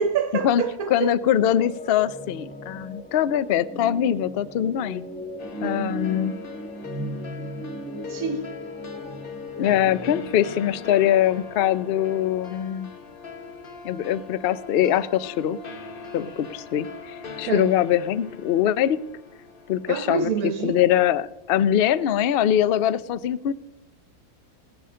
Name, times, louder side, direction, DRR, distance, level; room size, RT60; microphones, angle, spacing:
voice 1, 0.0-1.1 8.1-8.5 17.4-17.7 19.9-20.8, right 6 dB, 70° right, 1.3 m, -26 dB
voice 2, 0.9-5.0 5.6-6.4 9.6-12.9 13.8-15.6 16.1-19.0 19.7-20.3 20.6-23.5, left 10 dB, 75° left, 0.5 m, -22 dB
sound 1, 1.4-10.3, right 1 dB, 5° left, 1.0 m, -36 dB
sound 2, 5.4-20.7, left 5 dB, 40° left, 1.0 m, -41 dB
17.0 x 11.0 x 3.7 m
omnidirectional pair, 1.6 m